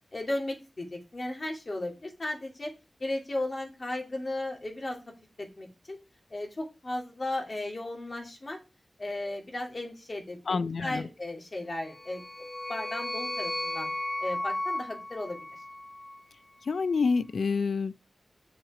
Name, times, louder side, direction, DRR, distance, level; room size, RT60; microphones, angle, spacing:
voice 1, 0.1-2.7 3.0-5.0 5.4-6.0 6.3-8.6 9.0-12.2 12.7-13.9 14.2-15.6, left 1 dB, 45° left, 2.9 m, -35 dB
voice 2, 10.5-11.1 16.6-18.1, left 4 dB, 80° left, 0.4 m, -28 dB
sound 1, 11.8-16.2, left 1 dB, 25° left, 0.7 m, -35 dB
7.9 x 6.3 x 5.0 m
cardioid pair, 55°, 0 cm